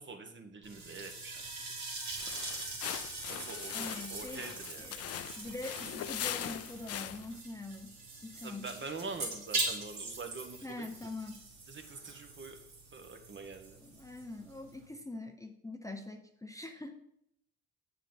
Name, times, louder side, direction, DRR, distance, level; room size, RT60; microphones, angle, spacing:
voice 1, 0.0-1.4 3.3-4.9 8.4-10.9 11.7-12.6 12.9-13.8, right 4 dB, 40° right, 6 dB, 1.1 m, -45 dB
sound 1, 0.6-14.9, right 3 dB, 65° right, 2.4 m, -42 dB
sound 2, 2.1-7.4, left 11 dB, 55° left, 0.5 m, -41 dB
voice 2, 3.7-7.9 8.2-8.7 10.6-11.4 13.8-16.9, left 2 dB, 10° left, 5 dB, 0.6 m, -44 dB
7.6 x 6.5 x 3.9 m, 0.77 s
cardioid pair, 90°, 30 cm